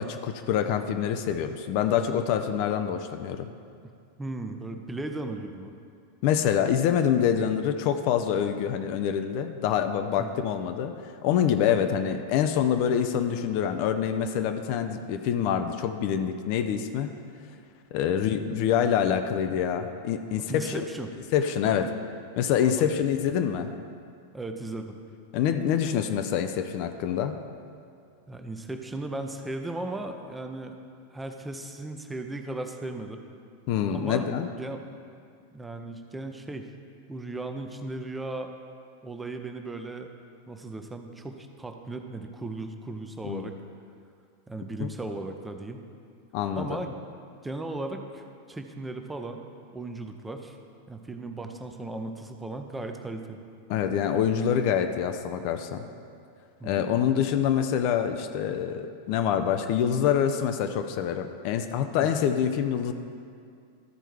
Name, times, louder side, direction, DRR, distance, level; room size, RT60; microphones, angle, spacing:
voice 1, 0.0-3.5 6.2-17.1 17.9-20.8 21.3-21.9 22.4-23.7 25.3-27.3 33.7-34.5 43.2-43.5 44.8-44.9 46.3-46.8 53.7-55.8 56.6-62.9, left 8 dB, 45° left, 7 dB, 0.5 m, -26 dB
voice 2, 4.2-5.7 10.2-10.3 20.5-21.1 21.6-21.9 22.6-22.9 24.3-25.0 28.3-30.8 31.1-33.2 33.9-34.3 34.5-34.8 35.5-36.7 37.1-38.5 39.0-40.1 40.5-43.5 44.5-45.8 46.5-47.0 47.4-48.2 48.5-49.4 49.7-50.6 50.9-53.4 56.6-56.9 62.0-62.1, right 2 dB, 10° right, 5 dB, 0.6 m, -36 dB
13.5 x 4.5 x 4.6 m, 2.3 s
figure-of-eight pair, 90°, 0 cm